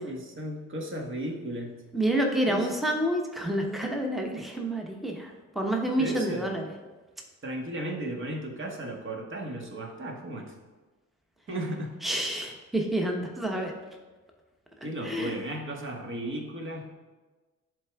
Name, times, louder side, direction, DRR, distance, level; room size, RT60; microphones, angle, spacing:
voice 1, 0.0-1.8 2.4-2.7 6.0-6.5 7.4-10.5 11.5-11.9 14.8-16.9, right 1 dB, 40° right, 1 dB, 1.4 m, -35 dB
voice 2, 1.9-6.7 12.0-13.7 15.0-15.3, right 1 dB, ahead, 1 dB, 0.9 m, -28 dB
10.5 x 3.8 x 3.5 m, 1.3 s
cardioid pair, 90°, 30 cm